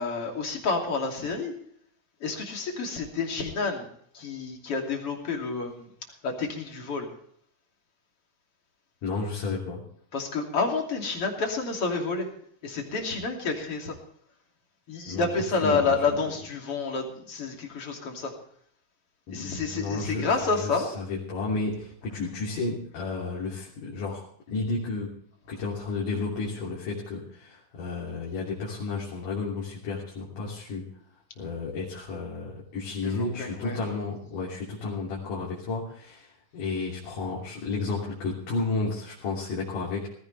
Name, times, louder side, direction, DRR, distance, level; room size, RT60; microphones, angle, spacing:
voice 1, 0.0-1.5 2.2-3.9 4.1-5.9 6.2-7.1 10.1-12.3 12.6-14.0 14.9-18.3 19.3-20.9 33.0-33.8, left 4 dB, 45° left, 2 dB, 3.6 m, -29 dB
voice 2, 9.0-9.8 15.1-15.3 15.6-16.2 19.3-25.2 25.5-30.9 31.4-40.1, left 3 dB, 85° left, -5 dB, 4.6 m, -32 dB
18.5 x 16.0 x 3.3 m, 0.63 s
omnidirectional pair, 3.6 m